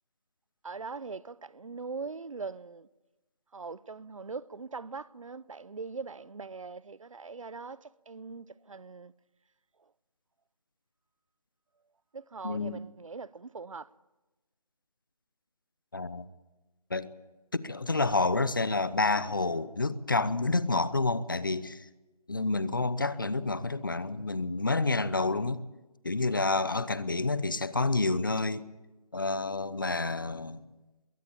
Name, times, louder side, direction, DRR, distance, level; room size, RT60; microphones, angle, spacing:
voice 1, 0.6-2.9 3.5-9.1 12.1-13.9, right 4 dB, 55° right, 0.7 m, -41 dB
voice 2, 12.4-12.8 15.9-16.3 16.9-17.1 17.5-21.9 22.3-25.6 26.0-28.7 29.1-30.7, left 3 dB, 35° left, 0.7 m, -29 dB
22.0 x 17.0 x 8.6 m
figure-of-eight pair, 175°, 20 cm